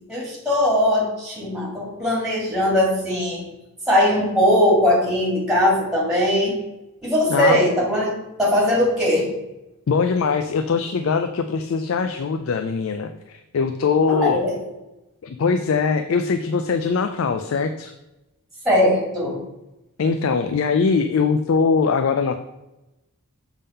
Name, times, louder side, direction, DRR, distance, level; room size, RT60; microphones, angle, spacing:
voice 1, 0.1-3.4 3.9-6.6 7.0-9.3 14.1-14.5 18.6-19.4, left 1 dB, ahead, -4 dB, 2.0 m, -20 dB
voice 2, 7.3-7.6 9.9-14.4 15.2-17.9 20.0-22.3, left 5 dB, 60° left, 8 dB, 0.4 m, -21 dB
7.0 x 3.7 x 5.4 m, 0.99 s
head